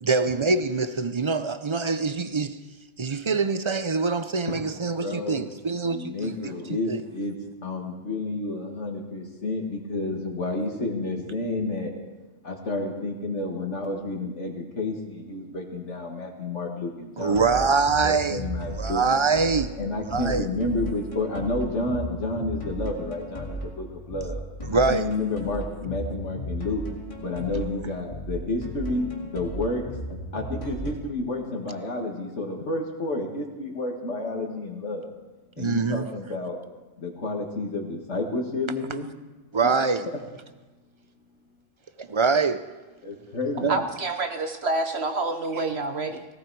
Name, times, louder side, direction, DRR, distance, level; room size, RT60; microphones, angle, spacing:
voice 1, 0.0-2.6 3.0-6.5 6.9-7.0 17.2-18.4 18.8-19.7 20.1-20.5 24.7-25.1 35.6-36.1 39.5-40.1 42.0-42.6 43.6-43.8, right 4 dB, 40° right, 0.4 m, -24 dB
voice 2, 5.0-5.5 5.8-7.4 7.6-11.9 12.4-17.7 18.0-19.1 19.8-24.4 24.7-26.8 27.2-29.9 30.3-35.1 35.6-36.6 37.0-39.1 40.1-40.2 43.0-43.9, left 2 dB, 65° left, 2.0 m, -30 dB
sound 1, 17.2-30.9, right 1 dB, 25° left, 2.2 m, -36 dB
voice 3, 43.7-46.3, right 2 dB, 60° right, 1.1 m, -28 dB
17.5 x 17.0 x 4.7 m
omnidirectional pair, 1.3 m